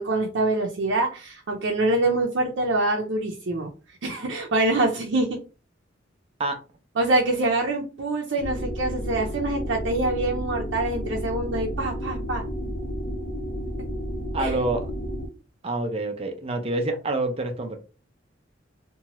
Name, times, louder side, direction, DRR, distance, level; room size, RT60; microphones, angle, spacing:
voice 1, 0.0-3.7 4.0-5.4 7.0-12.4 14.4-14.5, right 2 dB, 90° right, 0.5 m, -25 dB
sound 1, 8.4-15.3, equal, 70° left, 0.7 m, -31 dB
voice 2, 14.3-14.9 15.6-17.8, right 2 dB, 30° right, 0.5 m, -27 dB
2.8 x 2.2 x 2.9 m
head